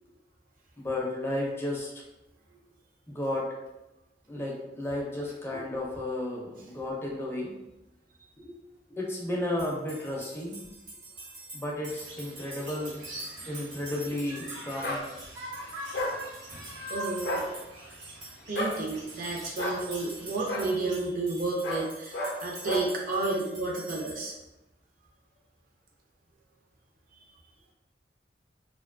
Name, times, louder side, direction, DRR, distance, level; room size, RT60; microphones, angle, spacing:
voice 1, 0.8-1.9 3.1-3.5 4.3-7.5 8.4-8.5 8.9-10.6 11.5-13.0 13.5-15.1, left 1 dB, 15° left, -3 dB, 0.4 m, -33 dB
Triangulo Forro, 9.6-24.1, right 2 dB, 75° right, 1.1 m, -46 dB
sound 1, 11.9-21.0, right 1 dB, 90° right, 0.7 m, -44 dB
sound 2, 14.8-15.0 15.9-16.2 17.2-17.5 18.5-18.8 19.6-19.8 20.5-20.7 21.6-21.9 22.1-22.4 22.6-22.9, left 1 dB, 65° left, 0.5 m, -31 dB
voice 2, 16.9-17.4 18.5-24.3, right 3 dB, 50° right, -1 dB, 0.5 m, -31 dB
2.5 x 2.2 x 2.4 m, 0.94 s
head